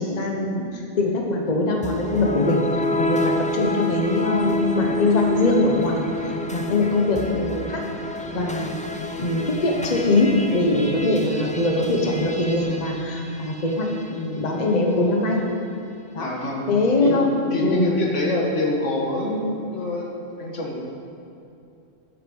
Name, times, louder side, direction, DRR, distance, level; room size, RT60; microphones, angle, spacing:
voice 1, 0.0-2.6 3.0-7.8 8.3-8.7 9.2-15.4 16.1-16.3 16.7-17.8, left 2 dB, 35° left, 0 dB, 1.2 m, -22 dB
sound 1, 1.8-14.1, left 1 dB, 10° left, 0.3 m, -29 dB
voice 2, 16.2-16.7 17.0-17.2 17.5-20.8, left 2 dB, 80° left, -1 dB, 1.8 m, -26 dB
12.5 x 7.6 x 5.5 m, 2.6 s
omnidirectional pair, 1.2 m